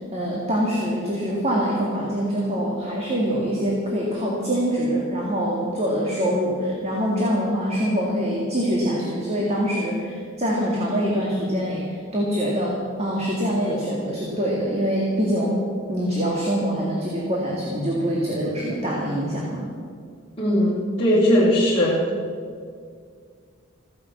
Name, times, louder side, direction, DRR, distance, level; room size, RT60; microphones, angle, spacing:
voice 1, 0.1-15.6 15.9-19.7, equal, 30° right, -3 dB, 2.2 m, -24 dB
voice 2, 20.4-21.9, left 1 dB, 30° left, -10 dB, 3.1 m, -19 dB
15.5 x 10.0 x 7.1 m, 2.1 s
head